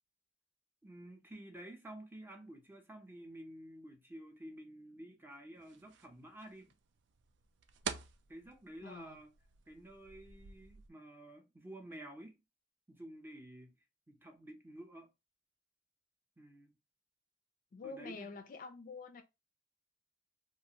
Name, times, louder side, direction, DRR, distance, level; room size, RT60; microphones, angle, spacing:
voice 1, 0.8-6.7 8.3-9.3 9.7-12.4 12.9-13.8 14.1-15.1 16.4-16.7 17.8-18.3, right 1 dB, 10° right, 0.6 m, -51 dB
sound 1, 5.6-10.9, right 7 dB, 65° right, 0.4 m, -48 dB
voice 2, 8.8-9.2 17.7-19.2, left 4 dB, 50° left, 0.4 m, -47 dB
2.6 x 2.4 x 2.8 m
head